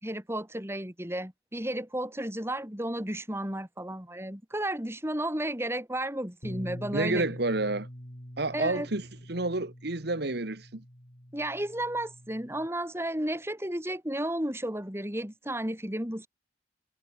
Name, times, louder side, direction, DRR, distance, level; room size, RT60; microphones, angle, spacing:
voice 1, 0.0-7.3 8.5-8.9 11.3-16.3, right 1 dB, 15° right, 6.8 m, -33 dB
Bass guitar, 6.4-12.7, equal, 35° left, 5.6 m, -45 dB
voice 2, 6.9-7.9 8.4-10.8, right 2 dB, 60° right, 1.7 m, -30 dB
head